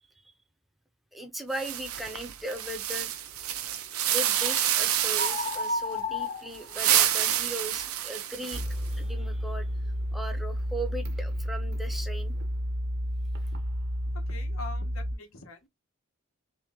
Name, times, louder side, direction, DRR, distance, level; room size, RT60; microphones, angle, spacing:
voice 1, 1.1-3.1 4.1-8.6 8.9-9.7 10.1-12.3, right 1 dB, ahead, 0.6 m, -38 dB
sound 1, 1.5-5.7 6.5-8.9, right 11 dB, 90° right, 0.5 m, -28 dB
sound 2, 4.4-4.7 5.1-7.2, left 2 dB, 45° left, 1.1 m, -33 dB
sound 3, 8.5-15.1, equal, 50° right, 0.7 m, -31 dB
voice 2, 14.3-15.7, left 3 dB, 70° left, 1.0 m, -44 dB
3.1 x 3.0 x 3.5 m
head